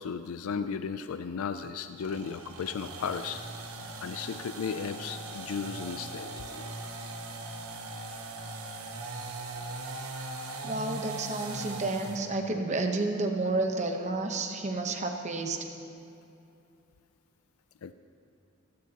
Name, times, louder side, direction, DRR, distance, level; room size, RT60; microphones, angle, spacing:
voice 1, 0.0-3.4 4.0-6.9 17.8-17.9, left 6 dB, 80° left, 10 dB, 0.4 m, -35 dB
sound 1, 2.0-12.3, right 2 dB, 90° right, 1.3 m, -40 dB
voice 2, 10.6-15.6, right 2 dB, 35° right, 4 dB, 1.0 m, -30 dB
17.0 x 15.5 x 2.9 m, 2.8 s
head